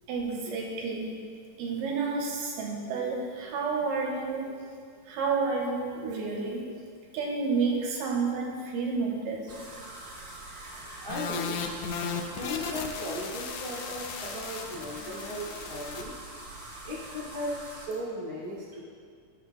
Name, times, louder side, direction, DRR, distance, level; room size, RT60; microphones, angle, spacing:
voice 1, 0.1-1.2 1.6-4.5 5.1-6.6 7.1-9.5, right 4 dB, 80° right, -1 dB, 2.7 m, -30 dB
sound 1, 9.5-17.9, right 2 dB, 50° right, 1.3 m, -44 dB
voice 2, 11.0-11.8 12.2-16.1 16.8-18.8, left 1 dB, 35° left, -9 dB, 0.8 m, -37 dB
sound 2, 11.1-16.0, left 6 dB, 80° left, 1.6 m, -37 dB
17.5 x 6.2 x 2.3 m, 2.2 s
omnidirectional pair, 3.8 m